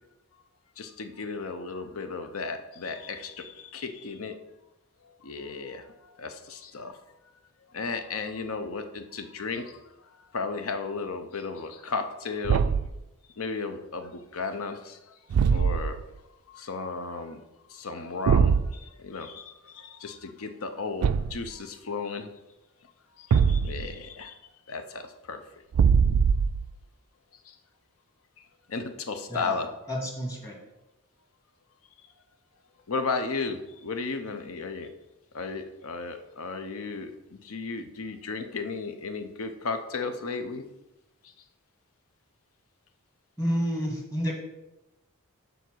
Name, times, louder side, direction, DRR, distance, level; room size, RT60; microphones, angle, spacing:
voice 1, 0.8-4.4 5.2-7.0 7.7-12.6 13.4-16.0 16.5-17.4 17.7-22.3 23.2-25.4 27.4-27.6 28.4-29.7 32.9-34.9 35.3-40.6, left 4 dB, 70° left, 8 dB, 0.7 m, -35 dB
Thump thud, 12.4-13.0 15.3-16.0 18.3-18.7 21.0-21.5 23.3-23.9 25.7-26.7, right 6 dB, 80° right, 0.3 m, -22 dB
voice 2, 29.9-30.6 43.4-44.3, equal, 15° left, 0 dB, 1.4 m, -29 dB
7.1 x 4.0 x 6.2 m, 0.97 s
head